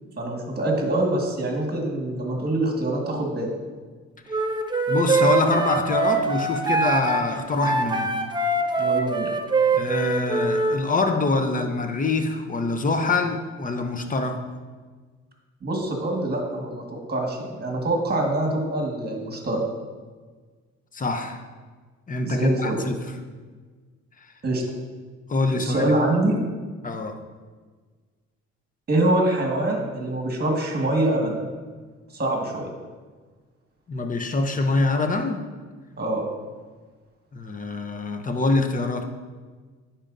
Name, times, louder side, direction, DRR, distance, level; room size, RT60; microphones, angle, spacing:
voice 1, 0.2-3.5 8.8-9.3 15.6-19.6 22.2-22.8 24.4-24.6 25.5-26.4 28.9-31.4 32.1-32.7 36.0-36.2, right 1 dB, 30° right, 1 dB, 1.6 m, -25 dB
Wind instrument woodwind instrument, 4.3-10.8, right 3 dB, 15° right, 0.6 m, -23 dB
voice 2, 4.9-8.1 9.7-14.4 20.9-21.4 22.1-23.1 25.3-25.9 26.8-27.2 33.9-35.5 37.3-39.1, left 3 dB, 25° left, 6 dB, 0.6 m, -25 dB
9.9 x 4.4 x 2.6 m, 1.4 s
cardioid pair, 90°, 30 cm